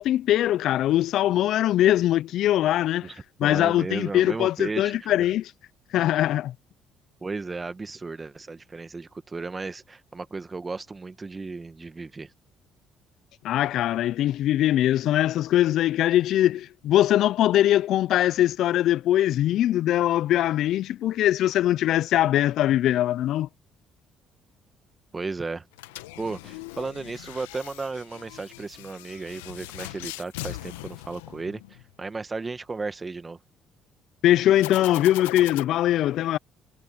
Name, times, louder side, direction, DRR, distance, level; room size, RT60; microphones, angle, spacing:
voice 1, 0.0-5.5 5.9-6.5 13.4-23.5 34.2-36.4, left 13 dB, 70° left, 0.4 m, -22 dB
voice 2, 3.0-5.1 7.2-12.3 25.1-25.7 26.2-33.4, right 3 dB, 30° right, 1.9 m, -34 dB
sound 1, 25.7-31.9 34.6-35.6, left 18 dB, 90° left, 1.2 m, -39 dB
hypercardioid pair, 60°, 0 cm